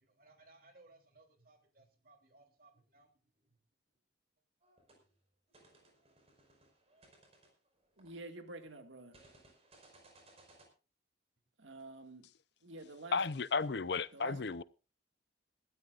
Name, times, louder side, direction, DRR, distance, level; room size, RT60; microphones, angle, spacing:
voice 1, 0.0-3.6, right 2 dB, 50° right, 3.4 m, -64 dB
sound 1, 4.6-5.0 5.5-8.5 9.1-10.7, right 2 dB, 35° right, 5.1 m, -63 dB
voice 2, 8.0-9.2 11.6-12.3 12.6-13.2 14.1-14.4, right 2 dB, 85° right, 2.0 m, -48 dB
voice 3, 13.1-14.6, left 4 dB, 60° left, 0.6 m, -34 dB
21.5 x 13.5 x 2.5 m
head